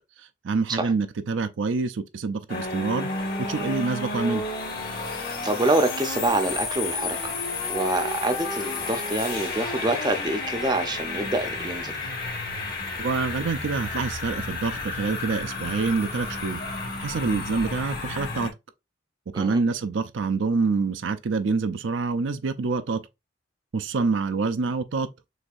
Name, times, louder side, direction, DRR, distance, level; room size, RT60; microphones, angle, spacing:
voice 1, 0.4-3.1 3.5-4.4 13.0-16.6 17.0-18.5 19.3-23.0 23.7-25.1, right 4 dB, 80° right, 0.5 m, -26 dB
sound 1, 2.5-18.5, left 3 dB, 50° left, 1.2 m, -31 dB
voice 2, 5.4-7.3 7.7-12.0 19.3-19.6, right 2 dB, 20° right, 0.5 m, -26 dB
6.4 x 2.7 x 2.4 m
head